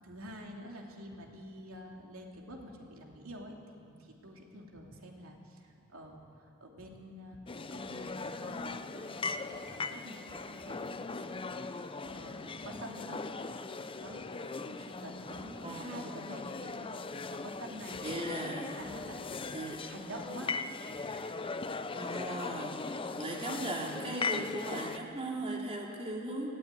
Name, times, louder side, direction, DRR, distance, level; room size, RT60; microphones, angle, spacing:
voice 1, 0.0-6.2 6.6-8.8 9.2-13.4 14.0-14.2 14.7-18.2 18.8-20.5 21.1-21.2, equal, 75° right, 1 dB, 2.8 m, -47 dB
sound 1, 7.5-25.0, left 3 dB, 25° left, 0.6 m, -39 dB
voice 2, 15.6-16.1 18.0-18.8 19.5-19.8 21.9-26.5, right 1 dB, 30° right, -2 dB, 2.9 m, -38 dB
18.5 x 14.5 x 9.7 m, 2.6 s
head